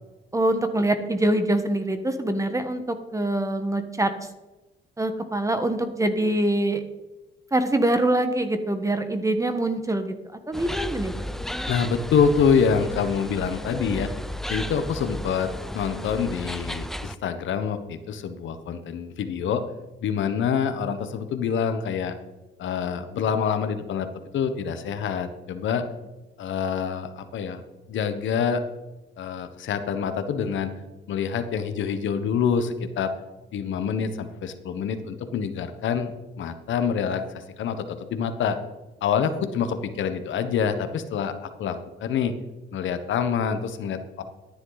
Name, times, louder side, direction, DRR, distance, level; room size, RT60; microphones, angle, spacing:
voice 1, 0.3-4.1 5.0-6.8 7.5-10.1 10.5-11.1, right 1 dB, 15° right, 8 dB, 1.4 m, -24 dB
sound 1, 10.5-17.2, equal, ahead, 0.5 m, -33 dB
voice 2, 11.7-14.1 14.5-19.6 20.0-22.1 22.6-24.1 24.3-25.9 26.4-27.6 27.9-28.6 29.2-30.7 31.1-33.1 33.5-37.2 37.6-38.6 39.0-42.4 42.7-44.2, left 7 dB, 75° left, 9 dB, 1.2 m, -26 dB
13.0 x 10.5 x 4.0 m, 1.1 s
cardioid pair, 90°, 20 cm